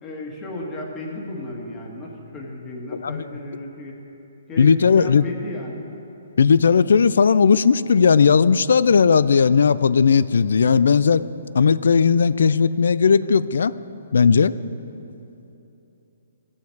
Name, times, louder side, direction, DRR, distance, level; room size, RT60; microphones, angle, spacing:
voice 1, 0.0-3.9 4.5-5.9, left 2 dB, 20° left, -1 dB, 1.5 m, -34 dB
voice 2, 4.6-5.3 6.4-11.2 11.5-13.7 14.1-14.6, left 6 dB, 75° left, 17 dB, 0.3 m, -16 dB
14.5 x 7.2 x 4.7 m, 2.9 s
hypercardioid pair, 155°, 0 cm